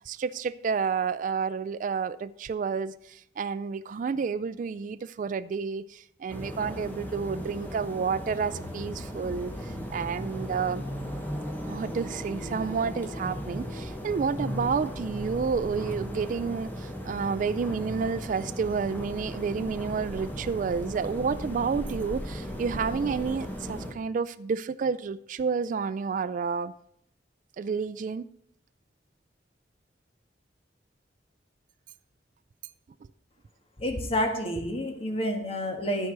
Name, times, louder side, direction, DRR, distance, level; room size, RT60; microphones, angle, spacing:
voice 1, 0.1-10.9 11.6-26.7 27.6-28.2, right 5 dB, 45° right, 0.3 m, -30 dB
sound 1, 6.3-23.9, equal, 10° left, 1.2 m, -36 dB
voice 2, 33.8-36.1, equal, 35° left, 1.5 m, -29 dB
12.5 x 4.6 x 6.8 m
head